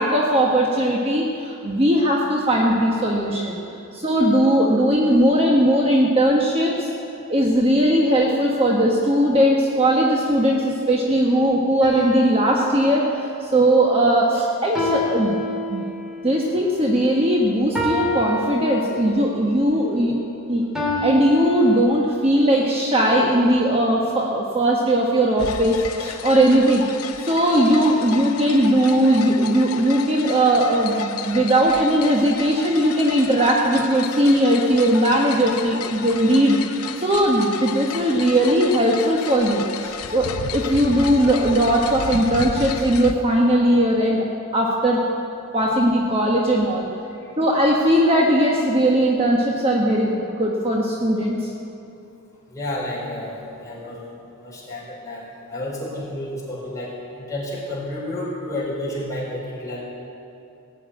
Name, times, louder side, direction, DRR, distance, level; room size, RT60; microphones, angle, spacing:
voice 1, 0.0-3.6 3.9-6.9 7.3-15.4 15.7-15.8 16.2-20.2 20.5-20.6 21.0-26.8 27.2-44.2 44.5-45.0 45.5-46.8 47.4-51.5, right 1 dB, 25° right, -2 dB, 1.2 m, -19 dB
sound 1, 11.8-13.6 14.7-16.2 17.7-19.3 20.7-21.8, left 1 dB, ahead, 2.7 m, -28 dB
sound 2, 25.4-43.1, left 6 dB, 85° left, 0.7 m, -33 dB
voice 2, 52.5-54.0 54.4-59.8, left 1 dB, 15° left, -7 dB, 4.3 m, -31 dB
17.0 x 7.2 x 9.2 m, 2.7 s
head